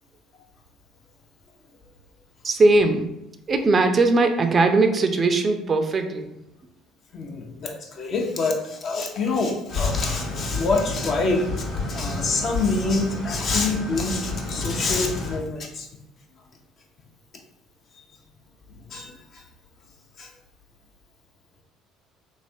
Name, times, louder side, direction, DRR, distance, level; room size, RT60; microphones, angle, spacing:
voice 1, 2.4-3.1 3.5-6.3, right 3 dB, 35° right, 6 dB, 0.4 m, -19 dB
voice 2, 7.1-15.9 18.0-18.1 18.9-19.4 20.2-20.3, left 3 dB, 50° left, 1 dB, 0.6 m, -26 dB
sound 1, 9.7-15.4, left 3 dB, 85° left, 1.4 m, -30 dB
3.2 x 2.4 x 2.7 m, 0.87 s
hypercardioid pair, 60°, 0 cm